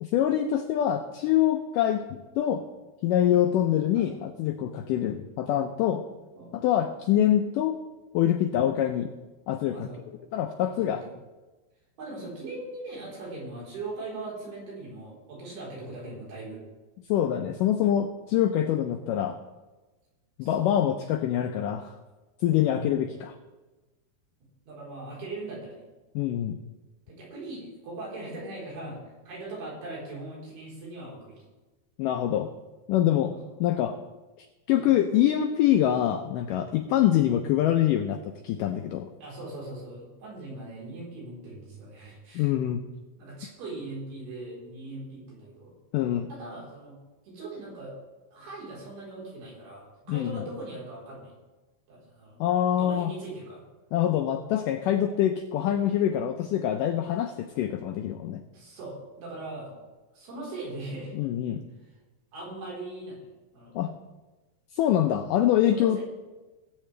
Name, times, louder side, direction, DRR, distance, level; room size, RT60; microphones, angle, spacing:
voice 1, 0.0-2.6 3.0-6.0 6.5-7.7 8.1-9.1 9.5-9.9 10.3-11.0 17.1-19.4 20.4-22.0 22.4-23.4 26.2-26.6 32.0-32.5 32.9-33.3 33.6-34.0 34.4-39.1 42.4-42.8 45.9-46.3 50.1-50.4 52.4-53.1 53.9-58.4 61.1-61.6 63.8-63.9 64.7-66.0, left 11 dB, 85° left, 6 dB, 1.9 m, -25 dB
voice 2, 9.7-10.0 10.5-11.1 12.0-16.6 18.3-18.4 20.4-20.7 22.7-23.2 24.7-25.8 27.1-31.4 33.3-33.4 34.7-34.9 39.2-42.5 43.2-45.7 46.3-47.0 47.2-47.9 48.3-51.3 51.9-52.4 52.8-53.6 58.5-59.8 60.1-61.1 62.3-63.3 63.5-63.8 65.5-66.0, right 2 dB, 80° right, -5 dB, 6.0 m, -40 dB
19.0 x 8.6 x 3.3 m, 1.2 s
omnidirectional pair, 4.5 m